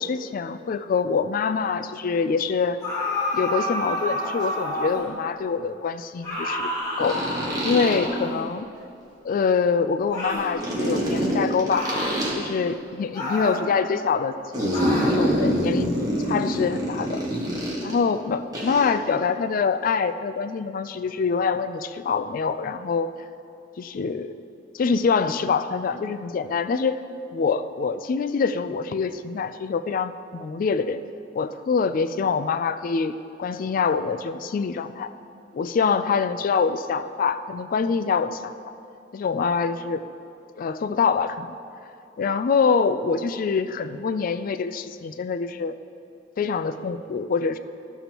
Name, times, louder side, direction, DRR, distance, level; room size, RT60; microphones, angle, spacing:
voice 1, 0.0-2.8 3.3-6.7 7.0-7.2 7.6-8.7 9.2-11.9 12.4-14.7 15.1-16.0 16.3-17.2 17.8-23.1 23.8-24.4 24.7-27.0 27.3-31.0 31.3-35.1 35.5-38.7 39.1-40.0 40.6-41.6 42.2-45.7 46.4-47.6, left 5 dB, 50° left, 11 dB, 0.3 m, -25 dB
sound 1, 2.8-5.1 6.2-8.5 10.1-10.5 11.7-12.2 13.1-13.7 14.7-15.2, left 1 dB, 20° left, 2.0 m, -29 dB
sound 2, 4.4-4.5 7.0-8.1 10.6-12.3 14.5-18.0 18.5-18.9, equal, 20° right, 1.4 m, -25 dB
13.0 x 6.8 x 2.9 m, 2.6 s
head